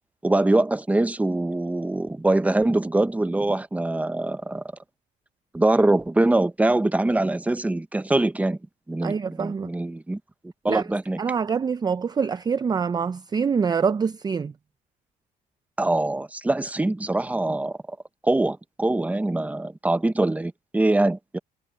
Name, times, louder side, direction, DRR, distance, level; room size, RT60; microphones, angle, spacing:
voice 1, 0.2-4.6 5.5-8.6 8.9-10.2 10.6-11.2 15.8-17.8 18.2-21.4, right 2 dB, 10° right, 0.9 m, -23 dB
voice 2, 9.0-9.7 10.7-10.9 11.2-14.5, right 6 dB, 25° right, 0.5 m, -25 dB
cardioid pair, 110°, 17 cm